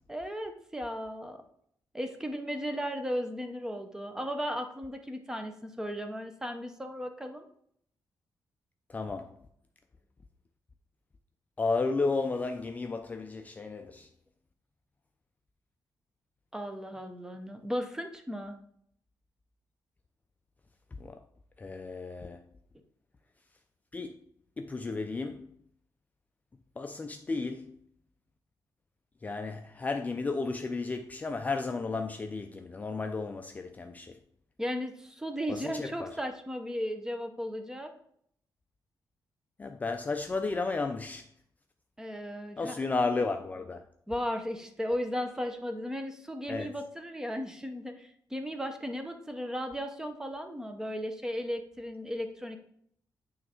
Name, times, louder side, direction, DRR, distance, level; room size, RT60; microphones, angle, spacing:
voice 1, 0.1-1.4 1.9-7.5 16.5-18.6 34.6-37.9 42.0-42.8 44.1-52.6, equal, 10° right, 0.7 m, -36 dB
voice 2, 8.9-9.4 11.6-14.1 21.0-21.2 21.6-22.4 23.9-24.2 24.6-25.6 26.8-27.8 29.2-34.2 35.5-36.2 39.6-41.3 42.6-43.8 46.5-46.7, left 3 dB, 20° left, 0.4 m, -33 dB
8.7 x 3.2 x 4.3 m
cardioid pair, 140°, 8 cm